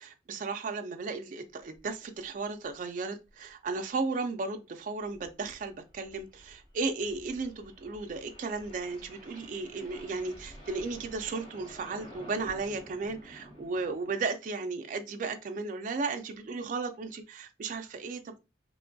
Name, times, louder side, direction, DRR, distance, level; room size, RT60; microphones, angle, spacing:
voice 1, 0.0-18.3, right 4 dB, 40° right, 0.3 m, -35 dB
sound 1, 1.7-1.9 2.2-2.3 2.6-2.7 3.2-3.5 4.8-14.1, equal, 30° left, 0.9 m, -51 dB
2.9 x 2.2 x 2.6 m
head